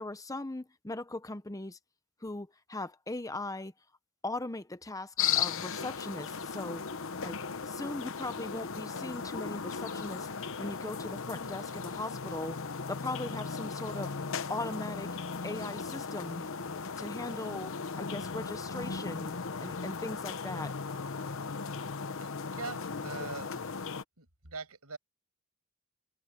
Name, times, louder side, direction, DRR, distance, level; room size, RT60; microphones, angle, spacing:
voice 1, 0.0-1.8 2.2-3.7 4.2-6.8 7.2-7.4 7.7-10.3 10.6-12.6 12.9-14.1 14.5-15.1 15.4-16.5 17.0-20.7, left 2 dB, 15° left, 0.8 m, -39 dB
sound 1, 5.2-24.0, left 5 dB, 65° left, 1.0 m, -37 dB
voice 2, 22.2-23.8 24.2-25.0, right 4 dB, 85° right, 6.4 m, -43 dB
head